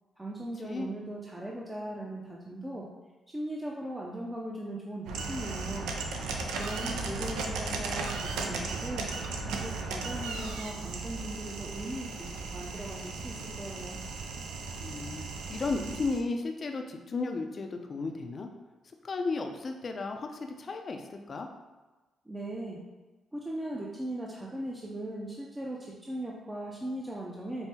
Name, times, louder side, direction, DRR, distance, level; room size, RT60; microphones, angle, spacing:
voice 1, 0.2-2.9 3.3-5.9 6.6-9.1 9.5-14.0 22.3-22.8 23.3-27.7, right 1 dB, 15° right, -3 dB, 0.5 m, -38 dB
sound 1, 5.1-16.2, right 3 dB, 90° right, 0.4 m, -36 dB
voice 2, 14.8-15.2 15.5-18.5 19.0-21.5, left 3 dB, 50° left, 4 dB, 0.4 m, -34 dB
5.4 x 2.0 x 2.8 m, 1.2 s
supercardioid pair, 65°, 0 cm